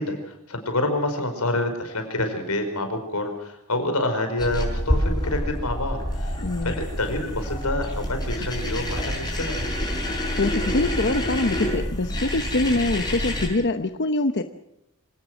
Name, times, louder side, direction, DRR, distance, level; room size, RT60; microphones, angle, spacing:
voice 1, 0.0-9.7, left 1 dB, 90° left, 6 dB, 5.2 m, -27 dB
sound 1, 4.4-13.5, equal, 20° left, 5.8 m, -27 dB
voice 2, 6.4-6.7 10.4-14.4, left 2 dB, 50° left, 8 dB, 0.9 m, -24 dB
26.5 x 17.5 x 6.4 m, 0.83 s
head